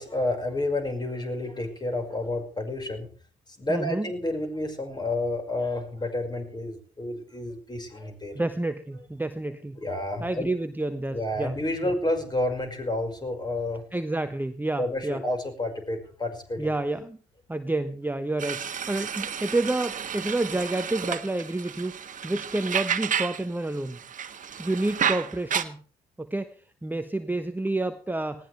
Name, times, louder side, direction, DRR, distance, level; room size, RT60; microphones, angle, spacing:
voice 1, 0.0-3.1 3.6-8.3 9.8-10.5 11.1-13.8 14.8-16.7, left 1 dB, 25° left, 4 dB, 5.6 m, -30 dB
voice 2, 3.7-4.1 8.3-9.8 10.2-11.6 13.9-15.2 16.6-17.2 17.5-22.0 22.2-24.0 24.6-25.8 26.2-26.5 26.8-28.5, right 2 dB, 10° right, 9 dB, 1.1 m, -29 dB
sound 1, 18.4-23.5 23.7-25.6, right 8 dB, 45° right, 1.5 m, -31 dB
19.0 x 17.0 x 3.4 m, 0.41 s
hypercardioid pair, 50°, 18 cm